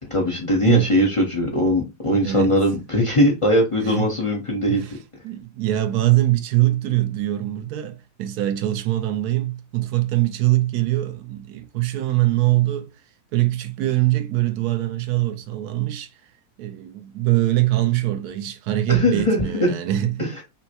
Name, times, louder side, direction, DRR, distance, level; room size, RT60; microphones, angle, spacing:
voice 1, 0.0-4.8 18.9-19.7 20.2-20.4, left 1 dB, 25° left, 0.8 m, -20 dB
voice 2, 2.2-2.6 3.8-4.1 4.7-4.9 5.2-12.9 13.3-16.1 16.6-20.3, right 15 dB, 85° right, 1.1 m, -22 dB
5.5 x 2.1 x 2.8 m
omnidirectional pair, 1.6 m